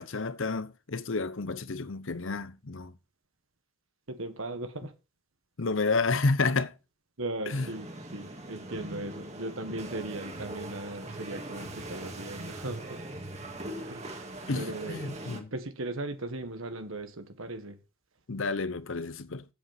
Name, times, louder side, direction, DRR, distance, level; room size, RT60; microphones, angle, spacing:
voice 1, 0.0-2.9 5.6-6.7 7.5-7.7 14.5-15.5 18.3-19.5, left 3 dB, 65° left, 0.8 m, -30 dB
voice 2, 4.1-4.9 7.2-13.0 13.9-14.2 14.5-15.2 15.5-17.8, right 2 dB, 70° right, 1.5 m, -38 dB
sound 1, 7.5-15.4, right 1 dB, 30° right, 1.9 m, -41 dB
8.4 x 8.2 x 5.9 m
head